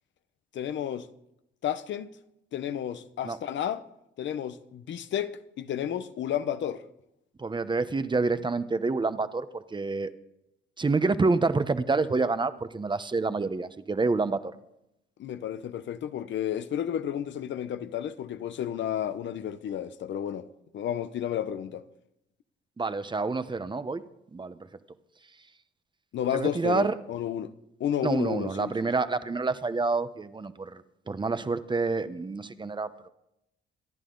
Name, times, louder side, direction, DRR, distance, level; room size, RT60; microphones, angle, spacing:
voice 1, 0.5-1.1 1.6-2.1 2.5-3.8 4.2-6.8 15.2-20.4 20.7-21.8 26.1-27.5 27.8-28.7, left 10 dB, 70° left, 0.9 m, -32 dB
voice 2, 7.4-10.1 10.8-14.5 22.8-24.0 24.3-24.6 26.3-26.9 28.0-33.1, right 3 dB, 25° right, 0.9 m, -28 dB
25.5 x 10.5 x 3.9 m
cardioid pair, 90°, 20 cm